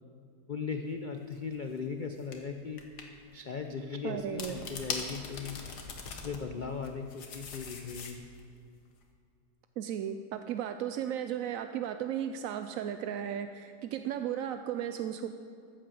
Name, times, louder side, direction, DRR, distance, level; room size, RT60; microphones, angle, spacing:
voice 1, 0.5-2.8 3.3-5.6 6.0-8.3, left 5 dB, 85° left, 5 dB, 0.4 m, -38 dB
sound 1, 1.3-1.5 2.3-2.4 2.8-3.1 4.2-6.4 6.8-8.4, left 5 dB, 70° left, 1.8 m, -40 dB
voice 2, 4.0-4.5 9.8-15.3, right 9 dB, 70° right, 8 dB, 0.8 m, -35 dB
14.0 x 8.9 x 6.9 m, 2.4 s
omnidirectional pair, 1.8 m